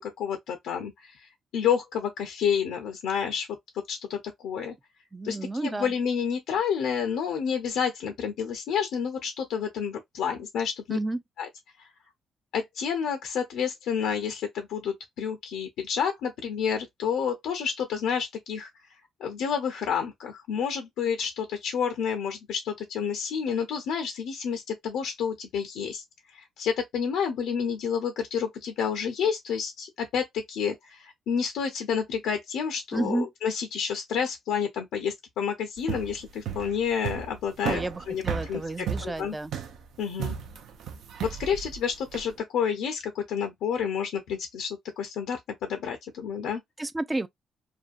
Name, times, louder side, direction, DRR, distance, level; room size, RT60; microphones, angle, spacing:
voice 1, 0.0-3.5 3.9-4.7 5.2-11.0 11.4-11.5 11.8-11.9 12.5-18.7 19.2-26.0 26.3-38.2 38.5-39.3 40.0-40.4 41.2-46.6, left 7 dB, 85° left, 0.5 m, -29 dB
voice 2, 5.1-5.9 10.9-11.2 32.9-33.3 37.6-39.5 46.8-47.3, right 2 dB, 15° right, 0.3 m, -31 dB
sound 1, 35.8-42.3, right 8 dB, 75° right, 0.5 m, -34 dB
2.5 x 2.2 x 2.4 m
cardioid pair, 90°, 0 cm